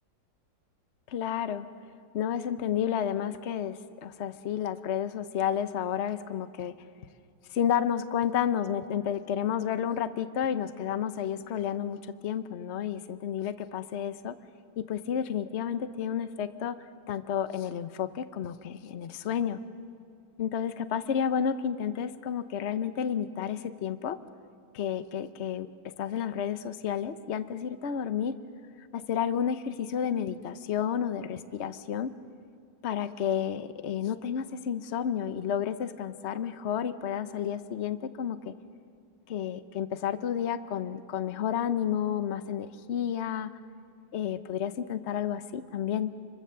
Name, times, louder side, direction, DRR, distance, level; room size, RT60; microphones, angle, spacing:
voice 1, 1.1-1.7 2.1-6.7 7.5-14.4 14.8-16.8 17.1-19.6 20.4-24.2 24.7-25.7 26.0-28.3 28.9-32.1 32.8-38.5 39.3-43.5 44.1-46.1, left 8 dB, 80° left, 12 dB, 0.6 m, -31 dB
29.0 x 23.5 x 6.8 m, 2.3 s
omnidirectional pair, 2.2 m